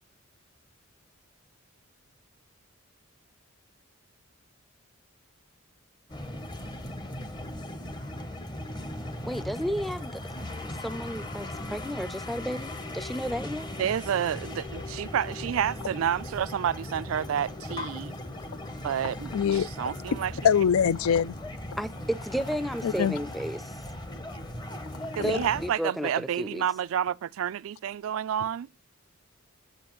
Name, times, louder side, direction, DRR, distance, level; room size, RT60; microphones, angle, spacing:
sound 1, 6.1-25.7, left 1 dB, 20° left, 0.8 m, -38 dB
voice 1, 9.2-10.2 10.6-13.7 21.8-23.8 25.2-26.6, equal, ahead, 0.4 m, -33 dB
voice 2, 13.8-18.1 18.8-20.3 25.1-28.7, right 9 dB, 70° right, 0.3 m, -29 dB
voice 3, 19.3-19.7 20.1-20.2 20.4-21.4 22.8-23.2 25.2-25.4, left 7 dB, 85° left, 0.4 m, -24 dB
8.9 x 7.6 x 3.0 m
head